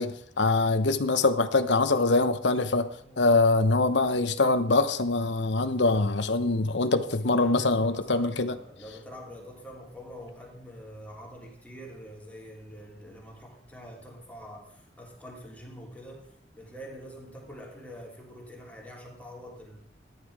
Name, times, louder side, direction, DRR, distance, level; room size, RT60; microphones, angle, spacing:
voice 1, 0.0-2.9 3.2-8.6, left 3 dB, 80° left, 10 dB, 1.0 m, -24 dB
voice 2, 3.0-3.3 6.8-16.3 16.5-19.8, equal, 10° left, -2 dB, 3.1 m, -45 dB
13.5 x 11.0 x 4.8 m, 0.66 s
head